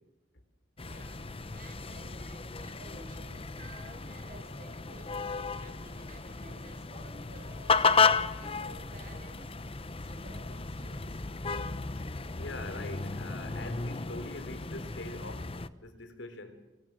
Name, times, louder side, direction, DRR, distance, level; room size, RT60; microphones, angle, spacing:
sound 1, 0.8-15.7, left 4 dB, 30° left, 0.9 m, -33 dB
voice 1, 0.8-5.3 5.5-8.0 8.3-11.3, right 2 dB, 50° right, 5.9 m, -53 dB
voice 2, 12.4-15.5 15.8-16.6, left 2 dB, 85° left, 3.9 m, -43 dB
29.5 x 24.5 x 7.7 m
head